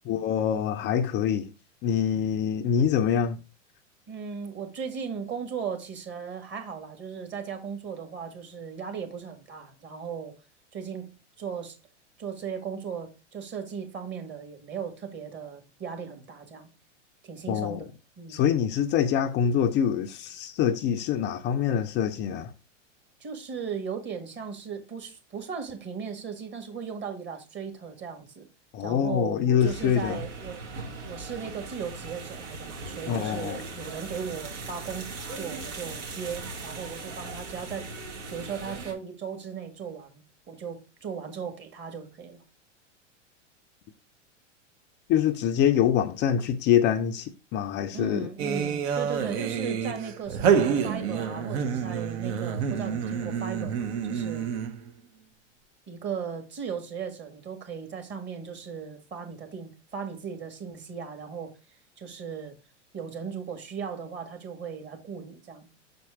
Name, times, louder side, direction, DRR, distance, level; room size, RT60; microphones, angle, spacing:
voice 1, 0.1-1.5 1.8-3.4 17.5-17.8 18.3-22.5 28.7-30.2 33.1-33.6 45.1-48.3, left 8 dB, 30° left, 0.5 m, -25 dB
voice 2, 4.1-10.3 10.7-11.1 11.4-11.8 12.2-16.7 17.2-17.9 18.2-18.4 23.2-28.5 28.8-30.6 31.0-37.9 38.3-42.4 47.9-54.5 55.9-61.5 62.0-62.5 62.9-65.7, right 6 dB, 30° right, 1.8 m, -37 dB
sound 1, 29.6-38.9, right 3 dB, 70° right, 2.5 m, -39 dB
sound 2, 48.4-54.9, right 7 dB, 55° right, 1.0 m, -28 dB
6.6 x 4.4 x 4.8 m
hypercardioid pair, 105°, 37 cm